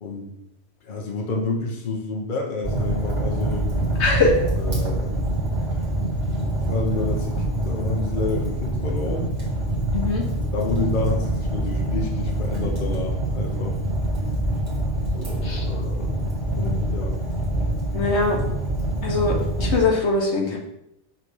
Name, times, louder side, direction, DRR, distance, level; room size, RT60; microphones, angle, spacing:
voice 1, 0.0-0.3 0.8-3.7 4.6-5.1 6.6-9.3 10.5-13.8 15.1-16.2 16.9-17.2, left 3 dB, 50° left, 0 dB, 1.0 m, -29 dB
Fire, 2.6-19.8, right 1 dB, 40° right, 1.8 m, -25 dB
voice 2, 4.0-4.4 9.9-10.2 15.4-15.6 16.6-16.7 17.9-18.4 19.0-20.6, left 3 dB, 75° left, 1 dB, 1.3 m, -22 dB
5.7 x 3.3 x 5.4 m, 0.81 s
omnidirectional pair, 1.2 m